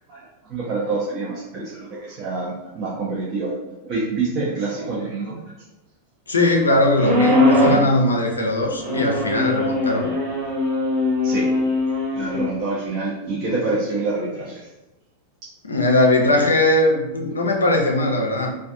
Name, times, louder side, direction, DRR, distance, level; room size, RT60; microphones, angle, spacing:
voice 1, 0.5-3.6 3.8-5.4 11.2-11.5 12.2-14.7, right 3 dB, 40° right, -6 dB, 0.5 m, -26 dB
voice 2, 6.3-10.1 15.6-18.5, left 1 dB, 75° left, 1 dB, 0.4 m, -19 dB
sound 1, 7.0-7.9 8.8-12.5, left 2 dB, 20° right, 1.0 m, -20 dB
2.4 x 2.2 x 2.5 m, 0.97 s
figure-of-eight pair, 90°, 0 cm